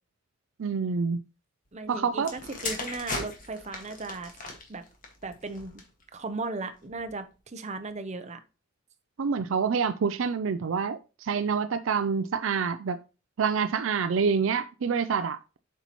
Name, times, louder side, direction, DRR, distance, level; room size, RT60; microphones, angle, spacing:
voice 1, 0.6-1.2 1.9-2.3 9.2-13.0 13.4-15.6, right 5 dB, 65° right, 0.4 m, -27 dB
voice 2, 1.7-4.3 4.7-4.8 5.2-5.7 6.1-8.4, right 3 dB, 35° right, 0.8 m, -36 dB
sound 1, 2.2-6.0 6.8-7.1, left 3 dB, 40° left, 1.7 m, -38 dB
8.0 x 5.6 x 3.0 m
head